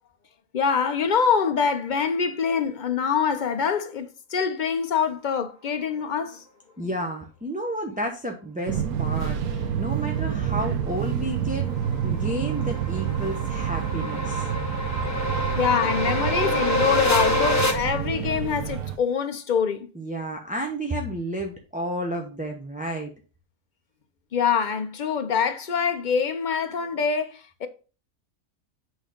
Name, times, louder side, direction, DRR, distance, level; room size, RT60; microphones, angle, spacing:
voice 1, 0.5-6.4 15.6-19.9 24.3-27.7, left 6 dB, 70° left, 0.4 m, -25 dB
voice 2, 6.8-11.7 12.0-14.5 19.9-23.1, right 1 dB, 5° right, 0.7 m, -31 dB
Fixed-wing aircraft airplane, 8.7-19.0, right 9 dB, 70° right, 1.2 m, -28 dB
sound 1, 11.1-17.7, left 1 dB, 10° left, 1.1 m, -27 dB
8.2 x 3.9 x 5.0 m
omnidirectional pair, 1.6 m